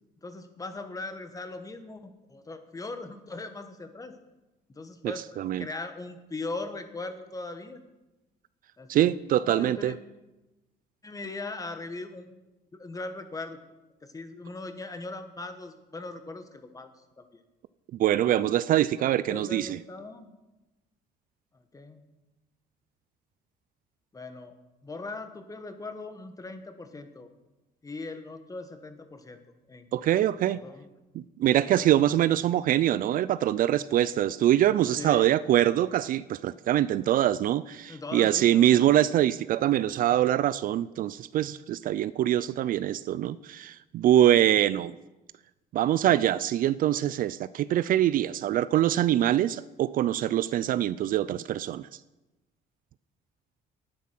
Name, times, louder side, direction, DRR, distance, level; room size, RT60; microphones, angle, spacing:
voice 1, 0.2-4.1 4.7-7.8 8.8-9.1 9.4-9.9 11.0-12.4 12.7-13.6 14.0-16.9 17.2-17.4 19.0-20.3 21.7-22.0 24.1-24.6 24.8-27.3 27.8-29.4 29.7-29.9 30.6-30.9 31.8-31.9 35.0-35.3 37.9-38.7, left 3 dB, 20° left, 8 dB, 1.4 m, -39 dB
voice 2, 5.0-5.7 8.9-9.9 17.9-19.8 29.9-30.6 31.1-44.9 45.7-51.9, right 12 dB, 55° right, 17 dB, 0.4 m, -24 dB
11.5 x 9.5 x 6.0 m, 1.0 s
cardioid pair, 110°, 17 cm